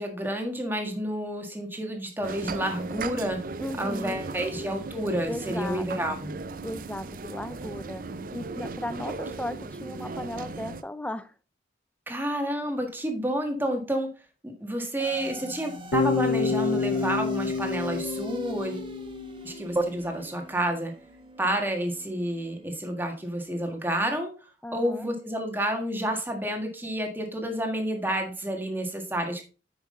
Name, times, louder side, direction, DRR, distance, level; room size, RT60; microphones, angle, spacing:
voice 1, 0.0-3.4 3.8-6.4 12.1-14.1 14.4-18.9 19.4-20.9 21.4-24.3 24.7-29.4, right 1 dB, 10° right, 1.6 m, -29 dB
sound 1, 2.2-10.8, right 3 dB, 50° right, 0.5 m, -37 dB
voice 2, 3.6-4.2 5.3-6.2 6.6-8.1 8.3-11.3 24.6-25.1, left 1 dB, 5° left, 0.4 m, -36 dB
sound 2, 15.0-23.5, right 1 dB, 25° right, 1.3 m, -45 dB
Bass guitar, 15.9-20.0, left 4 dB, 70° left, 0.6 m, -28 dB
9.2 x 6.1 x 3.8 m
head